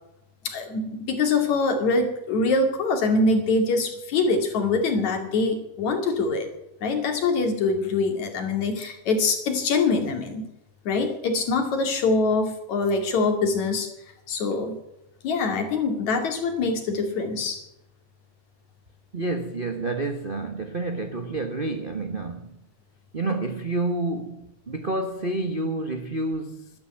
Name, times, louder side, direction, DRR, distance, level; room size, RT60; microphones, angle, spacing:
voice 1, 0.4-6.5 6.8-10.4 10.9-13.9 14.3-14.8 15.2-17.6, left 3 dB, 75° left, 3.8 m, -24 dB
voice 2, 19.1-22.6 23.1-26.7, right 2 dB, 65° right, 0.5 m, -29 dB
12.5 x 12.0 x 9.1 m
omnidirectional pair, 3.3 m